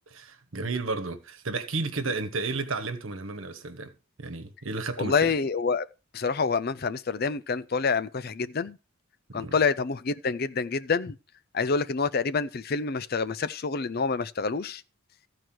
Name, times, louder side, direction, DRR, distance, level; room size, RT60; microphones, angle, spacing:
voice 1, 0.1-3.9 4.2-5.3 9.3-9.6, right 3 dB, 65° right, 1.3 m, -32 dB
voice 2, 5.0-5.9 6.1-8.8 9.3-11.2 11.5-14.8, left 5 dB, 45° left, 0.5 m, -27 dB
14.0 x 4.7 x 6.1 m
head